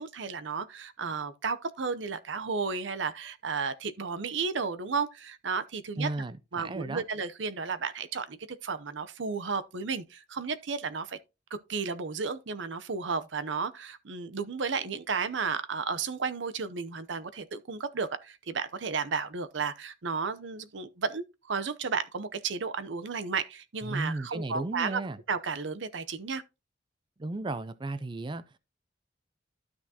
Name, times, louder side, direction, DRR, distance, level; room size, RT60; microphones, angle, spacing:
voice 1, 0.0-6.1 6.5-11.2 11.7-25.0 25.3-26.4, right 5 dB, 75° right, 0.7 m, -33 dB
voice 2, 6.0-7.0 23.8-25.2 27.2-28.6, right 2 dB, 25° right, 0.4 m, -34 dB
12.5 x 6.0 x 2.8 m
head